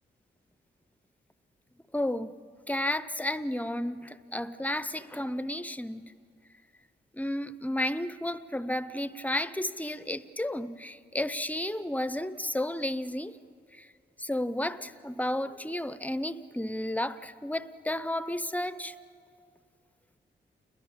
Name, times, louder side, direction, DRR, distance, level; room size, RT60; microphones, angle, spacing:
voice 1, 1.9-2.3 2.7-6.1 7.1-13.3 13.7-13.9 14.2-18.9, left 1 dB, 10° left, 13 dB, 0.6 m, -32 dB
29.0 x 21.5 x 7.3 m, 2.3 s
wide cardioid pair, 150°, 19 cm